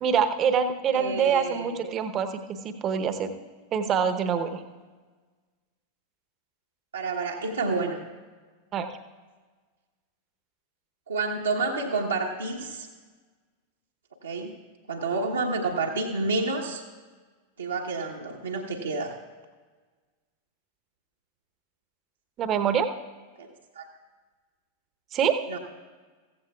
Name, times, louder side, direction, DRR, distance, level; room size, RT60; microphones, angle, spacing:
voice 1, 0.0-3.3 3.7-4.6 8.7-8.9 22.4-22.9 25.1-25.4, right 7 dB, 30° right, 9 dB, 0.9 m, -25 dB
voice 2, 0.9-1.7 6.9-8.0 11.1-12.9 14.2-14.5 14.9-16.8 17.6-19.1 23.4-23.5 23.7-23.8 25.5-25.6, right 3 dB, 75° right, -3 dB, 1.1 m, -29 dB
15.0 x 15.0 x 2.4 m, 1.4 s
figure-of-eight pair, 90°, 0 cm